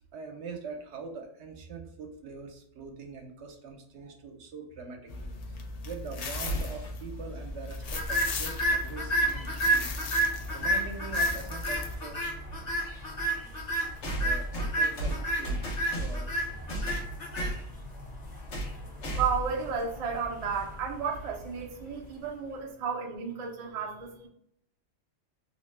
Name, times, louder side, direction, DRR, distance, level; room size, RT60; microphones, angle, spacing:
voice 1, 0.0-5.3 5.8-9.9 10.5-12.2 14.2-14.5 14.7-15.6 15.9-16.7, right 4 dB, 75° right, 4 dB, 0.9 m, -43 dB
sound 1, 5.1-12.0, left 3 dB, 65° left, 0.4 m, -38 dB
sound 2, 6.5-7.0 9.1-9.2 10.3-10.4 14.0-16.3 16.7-17.6 18.5-18.8 19.0-19.5, right 1 dB, 80° left, 1.1 m, -33 dB
sound 3, 7.9-22.2, right 1 dB, 45° left, 0.8 m, -32 dB
voice 2, 19.1-24.3, right 6 dB, 45° right, 0 dB, 0.5 m, -33 dB
2.9 x 2.1 x 3.1 m, 0.72 s
omnidirectional pair, 1.2 m